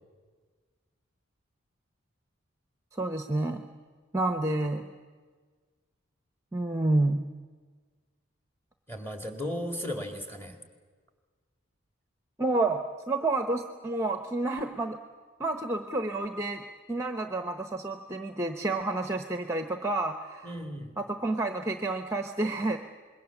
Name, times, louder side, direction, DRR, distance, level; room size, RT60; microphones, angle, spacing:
voice 1, 3.0-3.6 4.1-4.8 6.5-7.2 12.4-15.0 15.4-20.5 21.0-22.8, right 2 dB, 15° right, 7 dB, 0.9 m, -29 dB
voice 2, 8.9-10.6 20.4-20.9, equal, 10° left, 5 dB, 2.3 m, -35 dB
26.5 x 21.5 x 7.3 m, 1.5 s
head